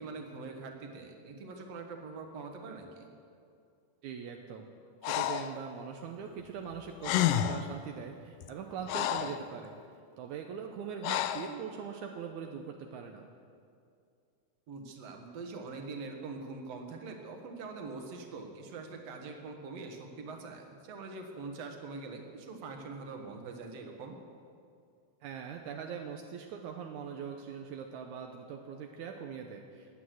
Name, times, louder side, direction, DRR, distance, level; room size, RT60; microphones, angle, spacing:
voice 1, 0.0-3.1 9.1-9.3 14.7-24.2, right 4 dB, 55° right, 3 dB, 2.2 m, -43 dB
voice 2, 4.0-4.6 5.0-9.8 10.2-13.3 25.2-29.9, right 7 dB, 75° right, 3 dB, 1.8 m, -41 dB
Breathing, 5.0-5.6 6.7-6.8 7.0-7.7 8.4-9.4 11.0-11.5, left 11 dB, 80° left, 2.0 m, -30 dB
21.0 x 8.5 x 7.7 m, 2.4 s
omnidirectional pair, 4.4 m